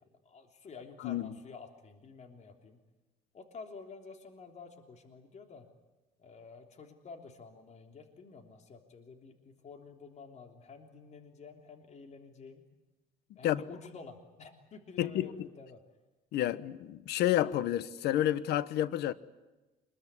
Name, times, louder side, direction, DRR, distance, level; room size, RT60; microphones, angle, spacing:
voice 1, 0.2-2.8 3.3-5.7 6.2-12.6 13.4-15.8, left 4 dB, 45° left, 3.3 m, -50 dB
voice 2, 1.0-1.4 13.4-13.6 15.0-15.3 16.3-19.1, left 13 dB, 80° left, 1.2 m, -30 dB
26.5 x 21.5 x 9.8 m
cardioid pair, 110°, 17 cm